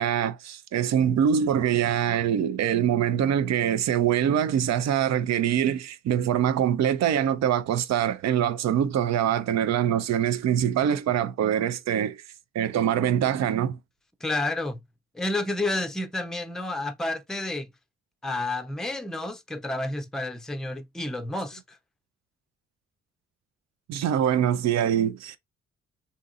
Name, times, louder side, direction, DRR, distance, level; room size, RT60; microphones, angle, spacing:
voice 1, 0.0-12.2 12.5-13.8 23.9-25.4, right 9 dB, 60° right, 0.6 m, -24 dB
voice 2, 14.2-14.8 15.1-17.7 18.2-21.8, left 2 dB, ahead, 0.5 m, -30 dB
3.6 x 2.8 x 2.5 m
hypercardioid pair, 45°, 31 cm